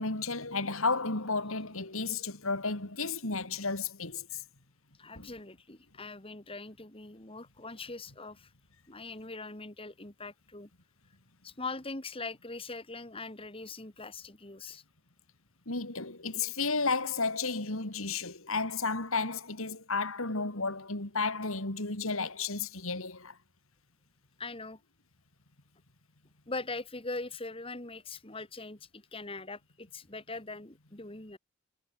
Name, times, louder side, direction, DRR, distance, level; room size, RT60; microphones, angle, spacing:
voice 1, 0.0-4.4 5.1-5.3 15.7-23.4, left 4 dB, 70° left, 3.4 m, -33 dB
voice 2, 5.0-8.5 8.9-10.7 11.4-14.8 24.4-24.8 26.5-31.4, left 3 dB, 25° left, 2.0 m, -41 dB
head